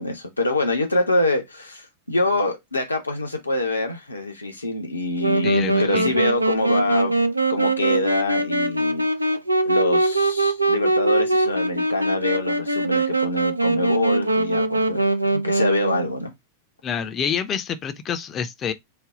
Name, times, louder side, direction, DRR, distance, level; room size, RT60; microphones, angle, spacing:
voice 1, 0.0-7.1 7.5-9.1 9.6-16.3, left 2 dB, 80° left, 1.0 m, -25 dB
Wind instrument woodwind instrument, 5.2-16.1, right 2 dB, 85° right, 0.4 m, -22 dB
voice 2, 5.4-6.2 16.8-18.7, left 7 dB, 30° left, 0.5 m, -27 dB
3.3 x 2.2 x 3.7 m
figure-of-eight pair, 90°, 0 cm